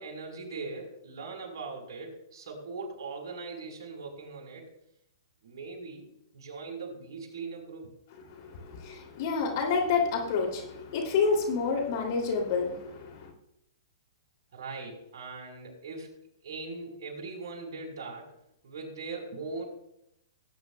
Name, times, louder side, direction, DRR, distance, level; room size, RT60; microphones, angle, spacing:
voice 1, 0.0-4.7 5.4-7.9 14.5-18.3 18.6-19.6, right 4 dB, 70° right, 0 dB, 4.7 m, -40 dB
voice 2, 8.3-13.3, left 5 dB, 50° left, 2 dB, 3.0 m, -29 dB
18.5 x 9.7 x 2.4 m, 0.80 s
hypercardioid pair, 130°, 2 cm